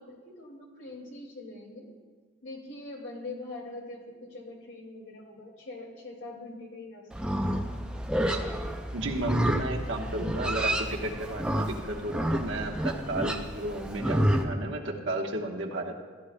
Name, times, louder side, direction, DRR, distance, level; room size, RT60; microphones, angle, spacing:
voice 1, 0.0-1.9 2.4-7.3, left 2 dB, 75° left, -1 dB, 2.4 m, -43 dB
Livestock farm animals working animals, 7.1-14.4, right 1 dB, 5° right, 0.5 m, -29 dB
voice 2, 8.9-16.0, right 1 dB, 80° right, 1 dB, 1.1 m, -33 dB
15.0 x 11.0 x 2.2 m, 1.4 s
head